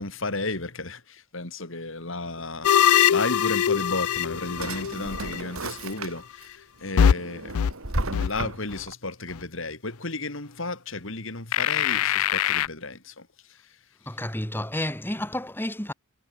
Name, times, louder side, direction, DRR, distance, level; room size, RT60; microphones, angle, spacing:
voice 1, 0.0-7.7 8.1-13.8, left 2 dB, 65° left, 3.1 m, -33 dB
sound 1, 2.6-5.5 7.0-7.1 7.5-7.7 8.1-8.3 8.7-8.8 11.5-12.7, left 9 dB, 85° left, 0.4 m, -22 dB
Drawer open or close, 3.9-6.5 6.9-8.9, right 2 dB, 75° right, 4.3 m, -34 dB
voice 2, 14.1-15.9, left 1 dB, 10° left, 2.4 m, -30 dB
head